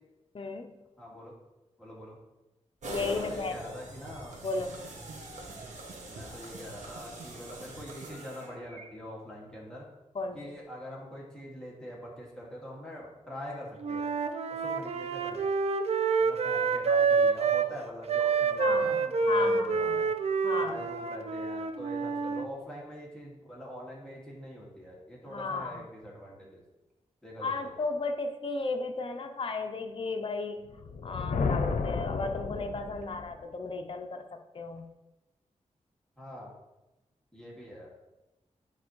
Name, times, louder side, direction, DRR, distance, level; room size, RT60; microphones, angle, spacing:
voice 1, 0.3-0.8 2.9-3.6 4.4-4.8 10.1-10.6 18.6-19.0 19.3-20.0 20.4-20.8 25.3-25.9 27.4-30.8 31.0-34.9, left 3 dB, 45° left, 5 dB, 0.6 m, -34 dB
voice 2, 1.0-1.3 1.8-2.2 3.1-4.4 6.1-9.9 10.3-14.1 14.5-15.5 16.2-20.1 20.6-26.6 27.2-27.8 36.2-36.5 37.3-38.0, equal, 5° left, -5 dB, 2.1 m, -44 dB
sound 1, 2.8-8.8, right 2 dB, 80° right, 1.3 m, -43 dB
Wind instrument woodwind instrument, 13.8-17.7 18.1-22.4, right 5 dB, 55° right, 0.5 m, -27 dB
Thunder, 30.7-33.4, left 4 dB, 90° left, 0.6 m, -32 dB
9.8 x 4.3 x 3.1 m, 1.0 s
wide cardioid pair, 85°, 12 cm